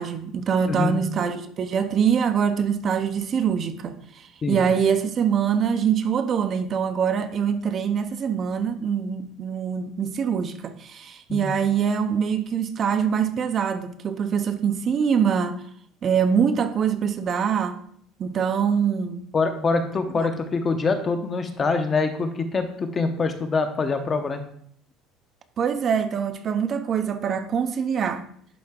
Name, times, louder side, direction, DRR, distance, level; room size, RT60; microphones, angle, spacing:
voice 1, 0.0-15.6 16.0-17.8 18.2-19.3 20.1-20.3 25.6-28.3, right 7 dB, 35° right, 0.5 m, -24 dB
voice 2, 0.7-1.0 4.4-4.6 11.3-11.5 19.3-24.4, left 4 dB, 25° left, 0.7 m, -24 dB
11.0 x 3.8 x 3.6 m
cardioid pair, 155°, 0 cm